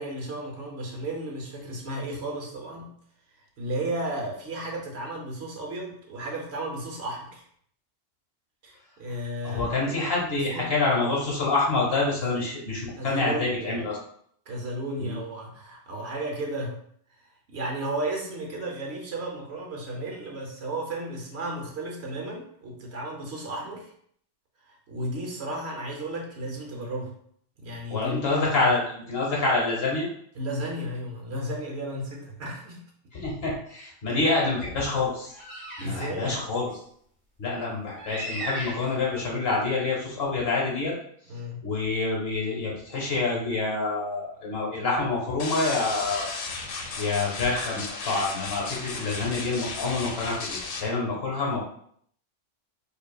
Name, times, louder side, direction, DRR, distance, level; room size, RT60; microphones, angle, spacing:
voice 1, 0.0-2.9 3.4-7.4 8.6-9.7 10.3-10.7 12.2-12.4 12.9-13.8 14.5-16.8 17.2-23.9 24.6-27.1 27.6-28.3 28.6-28.7 30.4-32.8 34.1-34.2 35.8-36.5 41.3-41.6, right 1 dB, 60° right, 0 dB, 1.0 m, -34 dB
voice 2, 9.4-14.0 15.0-15.1 27.9-30.1 33.1-35.3 35.8-36.7 37.4-40.9 41.6-46.3 47.0-51.6, left 3 dB, 50° left, -3 dB, 1.2 m, -27 dB
sound 1, 35.3-36.0 36.7-36.8 38.0-39.2, right 1 dB, 40° right, 1.2 m, -36 dB
sound 2, 45.4-50.8, left 4 dB, 75° left, 1.0 m, -35 dB
5.0 x 2.6 x 2.3 m, 0.65 s
omnidirectional pair, 1.3 m